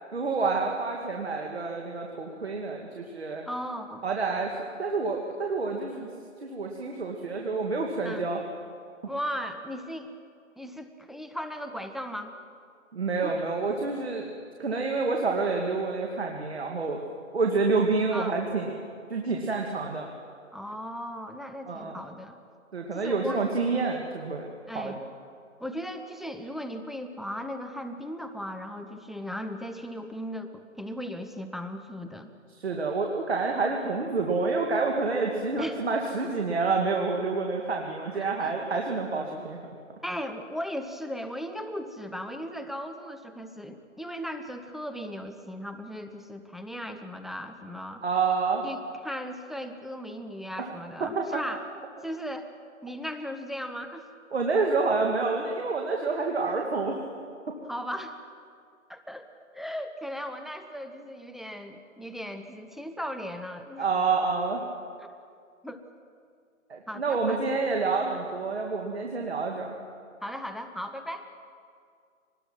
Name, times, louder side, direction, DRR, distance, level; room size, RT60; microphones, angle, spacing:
voice 1, 0.1-3.4 4.0-6.1 6.4-8.4 12.9-14.3 14.6-17.0 17.3-18.7 19.1-20.1 21.7-22.0 22.7-25.0 32.5-39.6 48.0-48.6 50.6-50.7 51.0-51.4 54.3-57.0 63.8-64.6 66.7-69.7, right 4 dB, 50° right, 1 dB, 2.2 m, -28 dB
voice 2, 3.5-4.1 8.0-8.3 9.1-10.1 10.6-12.3 13.2-13.4 18.1-18.4 20.5-22.4 22.9-23.5 24.7-25.0 25.6-32.3 35.6-35.8 38.1-38.5 40.0-48.0 48.6-51.6 52.0-52.5 52.8-54.1 57.7-58.2 58.9-59.3 59.5-63.9 65.6-65.8 66.9-67.4 70.2-71.3, equal, ahead, 7 dB, 0.4 m, -37 dB
25.5 x 20.0 x 6.0 m, 2.3 s
hypercardioid pair, 175°, 41 cm